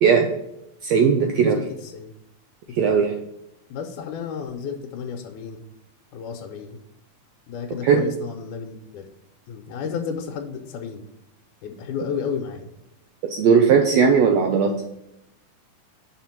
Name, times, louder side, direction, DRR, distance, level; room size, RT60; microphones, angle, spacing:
voice 1, 0.8-1.6 2.7-3.1 7.8-8.0 13.3-14.7, right 6 dB, 80° right, 4 dB, 1.5 m, -17 dB
voice 2, 1.5-2.1 2.7-3.0 3.7-5.6 6.1-6.8 7.5-9.1 9.5-11.0 11.6-12.7, left 6 dB, 85° left, 2 dB, 2.2 m, -32 dB
5.7 x 4.9 x 5.9 m, 0.83 s
omnidirectional pair, 3.6 m